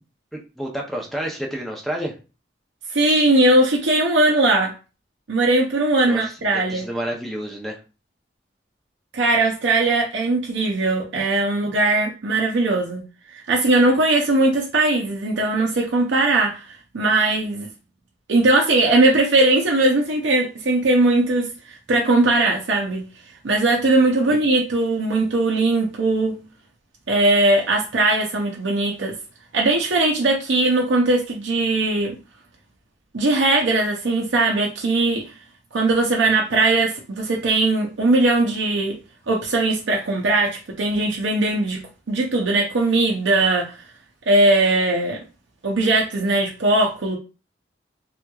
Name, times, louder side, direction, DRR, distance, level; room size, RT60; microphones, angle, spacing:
voice 1, 0.3-2.1 6.0-7.8 24.3-24.5, equal, ahead, -1 dB, 0.5 m, -30 dB
voice 2, 2.9-4.7 5.3-6.9 9.1-13.0 13.3-17.7 18.3-23.0 23.4-26.4 27.1-29.2 29.5-32.2 33.1-35.3 35.7-39.0 39.3-41.8 42.1-43.8 44.3-45.2 45.6-47.2, right 2 dB, 80° right, -1 dB, 0.6 m, -19 dB
3.4 x 2.9 x 2.3 m, 0.33 s
head